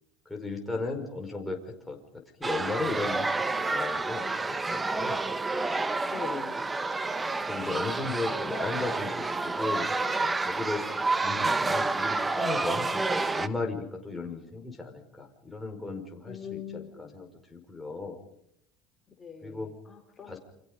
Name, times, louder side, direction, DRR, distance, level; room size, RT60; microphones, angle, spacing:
voice 1, 0.3-2.0 2.4-5.2 7.5-9.9 10.2-18.2 19.4-19.7 20.3-20.4, left 3 dB, 5° left, 2 dB, 5.1 m, -36 dB
sound 1, 2.4-13.5, right 3 dB, 15° right, 1.2 m, -29 dB
voice 2, 6.1-6.6 16.3-17.2 19.2-20.4, left 6 dB, 25° left, 1 dB, 3.8 m, -41 dB
29.0 x 26.0 x 5.1 m, 0.76 s
supercardioid pair, 120°, 0 cm